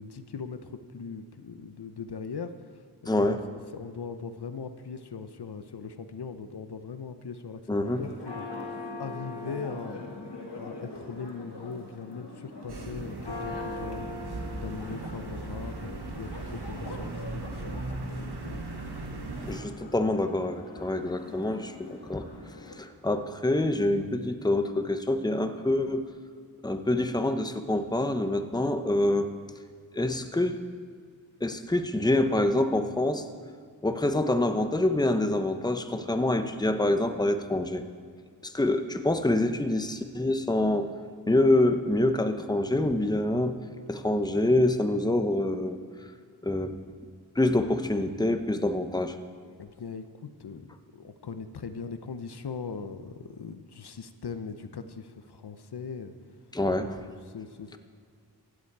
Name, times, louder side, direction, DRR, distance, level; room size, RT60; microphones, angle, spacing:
voice 1, 0.0-3.4 3.7-10.2 10.6-18.7 49.6-56.1 57.0-57.8, left 5 dB, 75° left, 9 dB, 0.8 m, -40 dB
voice 2, 3.1-3.4 7.7-8.0 19.4-22.3 22.8-26.1 26.6-29.3 29.9-30.6 31.4-33.3 33.8-37.8 38.4-40.9 41.3-43.6 43.9-45.8 46.4-46.8 47.3-49.2 56.5-57.0, left 1 dB, 10° left, 8 dB, 0.9 m, -26 dB
Church bell, 7.8-22.8, left 2 dB, 90° left, 2.3 m, -42 dB
sound 1, 12.7-19.6, right 3 dB, 75° right, 1.4 m, -38 dB
16.0 x 11.5 x 4.7 m, 2.1 s
wide cardioid pair, 65°, 40 cm